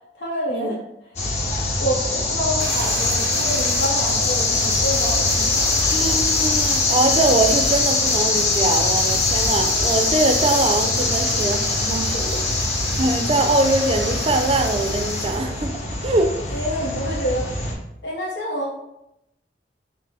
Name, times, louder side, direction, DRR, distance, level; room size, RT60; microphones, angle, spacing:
voice 1, 0.1-0.8 1.8-5.7 12.1-12.4 16.5-17.5 18.0-18.7, equal, 85° left, -4 dB, 0.8 m, -27 dB
sound 1, 1.2-17.7, left 3 dB, 40° left, 0.8 m, -22 dB
Fire, 2.6-15.4, right 4 dB, 90° right, 0.6 m, -35 dB
voice 2, 5.9-12.2 13.0-15.7 16.0-16.3, right 2 dB, 35° right, 5 dB, 0.4 m, -22 dB
5.8 x 2.1 x 3.3 m, 0.83 s
head